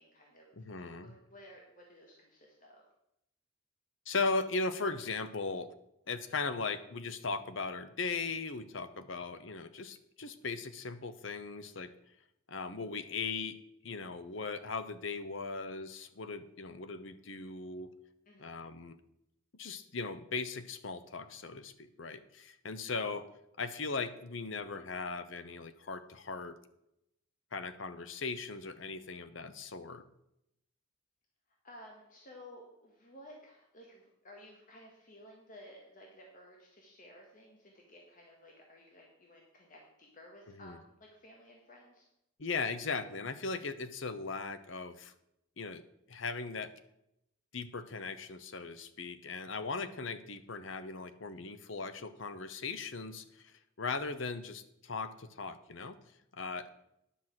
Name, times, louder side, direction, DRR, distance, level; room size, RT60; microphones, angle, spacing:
voice 1, 0.0-2.8 18.2-18.6 31.6-42.0, left 1 dB, 40° left, -1 dB, 1.7 m, -55 dB
voice 2, 0.6-1.1 4.1-5.7 6.1-11.9 12.5-13.6 13.8-17.9 18.4-19.0 19.5-23.2 23.6-26.6 27.5-30.0 40.6-40.8 42.4-45.1 45.6-45.8 46.1-46.7 47.5-56.0 56.3-56.7, left 4 dB, 65° left, 12 dB, 0.8 m, -38 dB
10.0 x 6.2 x 7.4 m, 0.81 s
head